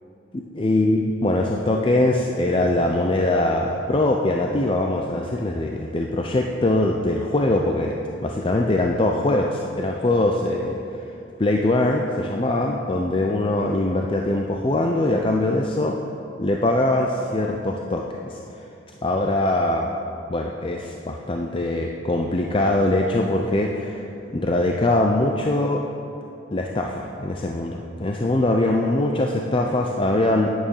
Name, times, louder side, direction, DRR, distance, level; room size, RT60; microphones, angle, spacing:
voice 1, 0.3-10.8 11.4-16.0 16.4-18.4 19.0-19.9 20.3-24.0 24.3-25.8 26.5-30.5, left 2 dB, 30° left, 1 dB, 0.5 m, -22 dB
9.9 x 9.0 x 5.5 m, 2.8 s
head